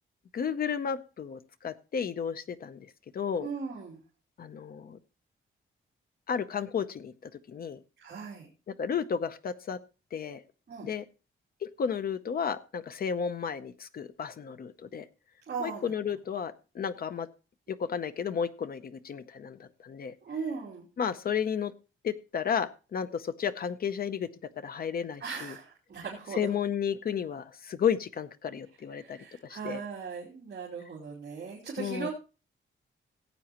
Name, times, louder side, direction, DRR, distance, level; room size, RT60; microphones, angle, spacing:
voice 1, 0.3-3.5 4.4-5.0 6.3-7.8 8.7-9.8 10.1-10.4 10.8-11.0 11.6-15.1 15.6-17.3 17.7-20.1 21.0-21.7 22.0-24.3 24.6-25.5 26.4-29.8 31.8-32.1, left 7 dB, 45° left, 11 dB, 0.7 m, -33 dB
voice 2, 3.3-4.0 8.0-8.5 10.7-10.9 15.5-15.9 20.2-20.9 25.2-26.4 28.9-32.1, right 5 dB, 55° right, -6 dB, 2.9 m, -38 dB
17.5 x 8.3 x 2.9 m, 0.33 s
wide cardioid pair, 180°, 21 cm